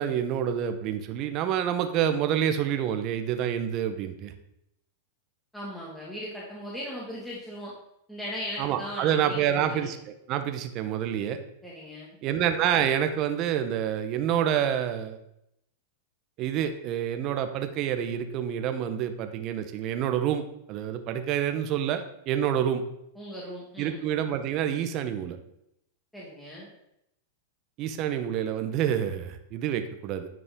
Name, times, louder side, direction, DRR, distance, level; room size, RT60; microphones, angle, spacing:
voice 1, 0.0-4.3 8.6-11.4 12.2-15.2 16.4-22.8 23.8-25.4 27.8-30.3, right 9 dB, 45° right, 8 dB, 1.0 m, -28 dB
voice 2, 5.5-7.7 8.1-9.9 11.6-12.1 23.2-24.0 26.1-26.7, equal, 5° left, -6 dB, 2.0 m, -38 dB
9.7 x 5.3 x 3.7 m, 0.79 s
hypercardioid pair, 120°, 0 cm